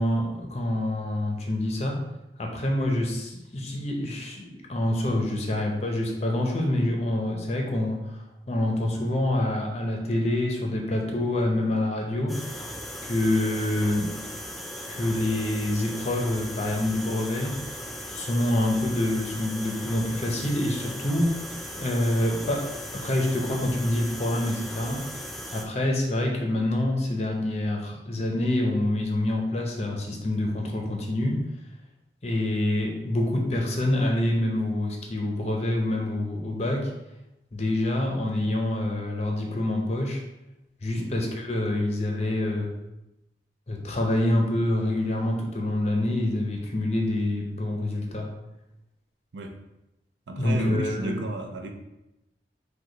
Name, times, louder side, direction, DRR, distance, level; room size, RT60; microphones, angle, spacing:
voice 1, 0.0-2.0 2.4-8.2 8.5-12.7 13.0-14.1 14.9-17.6 18.1-21.4 21.8-22.7 22.9-25.0 25.5-31.4 32.2-36.9 37.5-40.2 40.8-42.7 43.7-48.3 50.3-51.2, left 1 dB, 35° left, 1 dB, 0.6 m, -26 dB
sound 1, 12.3-25.7, equal, ahead, 0.4 m, -38 dB
voice 2, 50.3-51.7, right 2 dB, 85° right, 4 dB, 0.5 m, -33 dB
4.8 x 2.2 x 3.8 m, 0.93 s
head